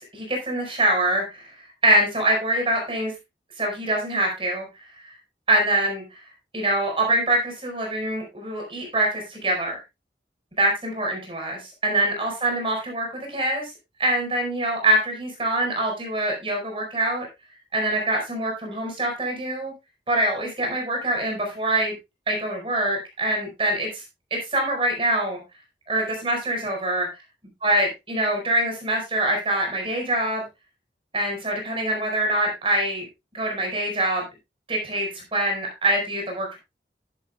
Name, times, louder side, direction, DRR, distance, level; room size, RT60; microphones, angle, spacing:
voice 1, 0.1-1.5 1.8-3.1 3.6-4.7 5.0-5.1 5.5-6.2 6.5-9.8 10.6-13.7 14.0-17.3 17.7-19.7 20.1-21.9 22.3-24.0 24.3-25.4 25.9-27.1 27.6-30.4 31.1-33.1 33.3-34.2 34.7-36.6, right 1 dB, 30° right, 1 dB, 4.8 m, -24 dB
12.5 x 10.5 x 2.3 m, 0.23 s
head